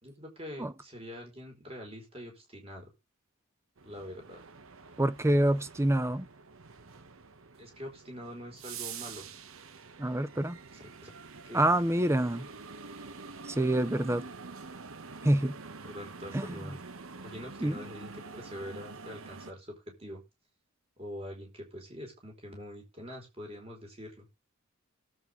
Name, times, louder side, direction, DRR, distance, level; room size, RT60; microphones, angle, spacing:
voice 1, 0.0-2.9 3.8-4.5 7.6-9.3 10.7-11.1 11.4-11.6 14.2-14.3 15.8-16.8 17.2-20.2 21.0-24.3, equal, 30° right, 4.9 m, -44 dB
sound 1, 3.8-19.5, right 4 dB, 65° right, 1.1 m, -47 dB
voice 2, 5.0-6.3 10.0-10.6 11.5-12.5 13.4-14.2 15.2-15.6 16.3-16.5 17.6-17.8, right 1 dB, 10° right, 0.5 m, -26 dB
18.0 x 8.3 x 3.6 m
head